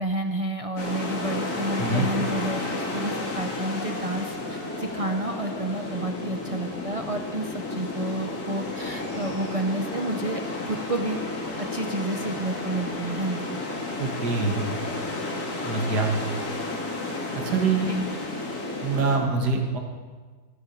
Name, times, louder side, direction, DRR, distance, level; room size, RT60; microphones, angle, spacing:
voice 1, 0.0-11.2 11.6-13.5 17.9-18.0, right 2 dB, 50° right, 5 dB, 0.4 m, -30 dB
sound 1, 0.8-19.2, left 2 dB, 65° left, 2.7 m, -32 dB
sound 2, 1.1-6.0, left 2 dB, 85° left, 3.2 m, -41 dB
voice 2, 14.0-14.6 15.6-16.1 17.3-17.9 18.8-19.8, right 4 dB, 80° right, 2 dB, 2.2 m, -24 dB
14.5 x 11.0 x 7.0 m, 1.4 s
omnidirectional pair, 1.7 m